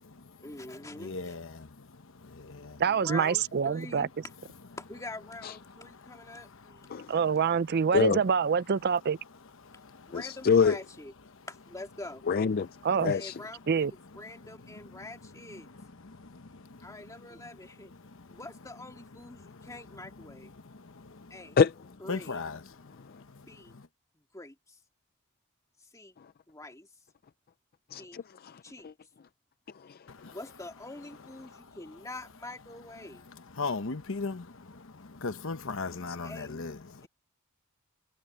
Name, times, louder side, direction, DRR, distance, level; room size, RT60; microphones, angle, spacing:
voice 1, 0.4-1.4 2.9-4.1 4.8-6.9 10.1-11.1 11.5-12.2 12.9-13.9 14.1-15.7 16.8-17.9 18.3-20.5 21.3-21.6 22.0-22.4 23.5-23.7 24.1-24.8 25.9-26.1 26.5-26.9 28.0-28.2 28.6-28.9 30.3-33.2 36.2-36.6 37.0-37.1, left 2 dB, 15° left, 2.5 m, -45 dB
voice 2, 1.0-2.8 5.7-7.1 9.6-10.2 14.4-15.1 15.6-17.3 17.8-18.4 19.4-19.7 20.4-21.4 22.1-23.9 30.1-30.4 31.4-31.7 33.4-37.1, left 4 dB, 60° left, 1.0 m, -40 dB
voice 3, 2.8-4.1 7.1-9.2 12.8-13.1 13.7-13.9, right 6 dB, 45° right, 0.4 m, -26 dB
voice 4, 10.1-10.8 12.3-12.7 13.0-13.3 21.6-21.7 27.9-28.9 29.8-30.0, left 6 dB, 45° left, 0.4 m, -25 dB
head